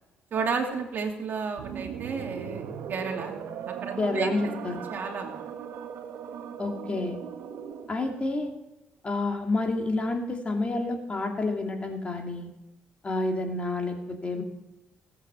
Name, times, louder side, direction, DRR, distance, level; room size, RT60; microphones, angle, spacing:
voice 1, 0.3-3.3 3.8-4.3 4.9-5.5, right 5 dB, 55° right, 3 dB, 2.6 m, -32 dB
sound 1, 1.6-8.1, right 8 dB, 80° right, 1.4 m, -38 dB
voice 2, 4.0-4.8 6.6-7.2 7.9-8.5 9.0-12.5 13.0-14.4, left 2 dB, 30° left, 3 dB, 2.5 m, -29 dB
18.5 x 8.5 x 6.9 m, 0.96 s
cardioid pair, 90°, 4 cm